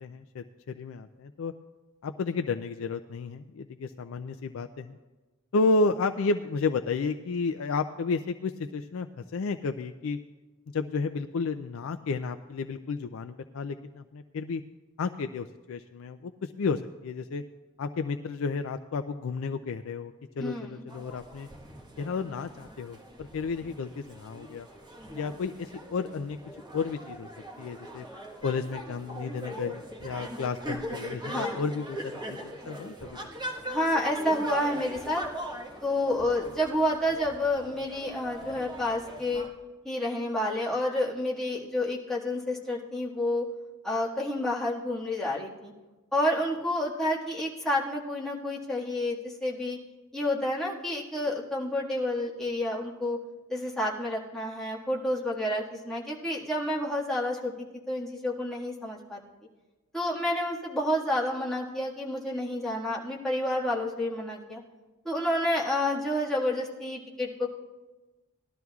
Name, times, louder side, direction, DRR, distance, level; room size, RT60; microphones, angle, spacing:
voice 1, 0.0-1.5 2.0-5.0 5.5-10.2 10.7-14.6 15.0-17.4 17.8-21.5 22.0-24.7 25.1-26.4 26.7-27.3 27.6-28.1 28.4-33.2, left 4 dB, 65° left, 8 dB, 0.4 m, -32 dB
voice 2, 20.4-20.8 31.2-31.6 33.7-35.2 35.8-39.4 39.8-43.5 43.8-45.7 46.1-49.8 50.1-53.2 53.5-57.5 57.9-59.2 59.9-64.6 65.0-67.5, left 1 dB, ahead, -6 dB, 1.7 m, -29 dB
sound 1, 20.9-39.5, right 1 dB, 20° right, 1.3 m, -41 dB
19.0 x 12.5 x 2.4 m, 1.2 s
head